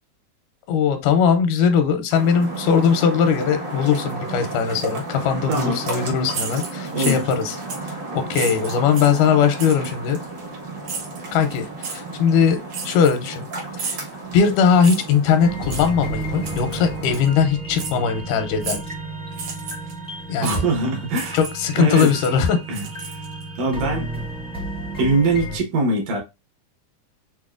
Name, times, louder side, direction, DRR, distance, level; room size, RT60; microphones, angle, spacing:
voice 1, 0.7-7.6 7.8-10.2 11.3-13.5 13.8-14.0 14.3-18.8 20.3-20.6 21.3-22.6, left 6 dB, 85° left, 2.2 m, -20 dB
sound 1, 2.1-17.2, right 2 dB, 50° right, 1.4 m, -33 dB
sound 2, 6.3-7.4 7.7-7.9 8.3-9.2 9.6-9.9 10.8-11.2 11.8-12.0 12.7-13.4 13.8-14.1 14.8-15.2 15.7-15.9 16.4-16.8 17.1-17.3 17.8-18.0 18.6-18.9 19.3-19.9 20.4-20.6 21.1-21.7 21.9-23.4, right 5 dB, 70° right, 2.2 m, -32 dB
sound 3, 15.4-25.6, right 1 dB, 5° left, 0.5 m, -32 dB
voice 2, 20.4-21.4 21.7-22.1 22.7-23.2 23.6-24.1 25.0-26.2, right 2 dB, 85° right, 2.7 m, -22 dB
6.0 x 2.1 x 2.4 m
omnidirectional pair, 3.6 m